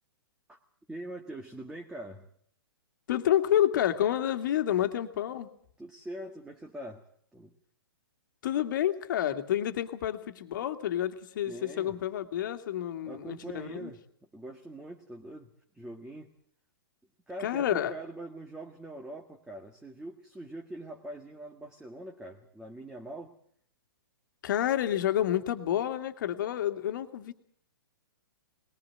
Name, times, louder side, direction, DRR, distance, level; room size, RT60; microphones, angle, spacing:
voice 1, 0.9-2.3 5.8-7.1 7.3-7.5 11.5-12.0 13.0-16.3 17.3-23.3, right 1 dB, 5° right, 1 dB, 1.8 m, -43 dB
voice 2, 3.1-5.5 8.4-13.9 17.4-17.9 24.4-27.3, left 11 dB, 55° left, 8 dB, 2.2 m, -29 dB
21.0 x 19.5 x 7.8 m, 0.62 s
hypercardioid pair, 125°, 12 cm